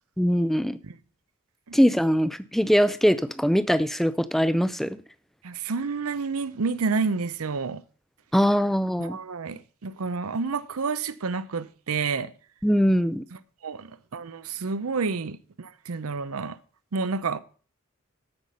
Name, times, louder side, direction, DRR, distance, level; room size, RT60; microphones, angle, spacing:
voice 1, 0.2-0.8 1.7-5.0 8.3-9.2 12.6-13.2, equal, ahead, 0.4 m, -22 dB
voice 2, 5.4-7.8 9.0-12.3 13.6-16.6 16.9-17.4, right 4 dB, 85° right, 0.7 m, -29 dB
13.5 x 5.8 x 5.3 m
head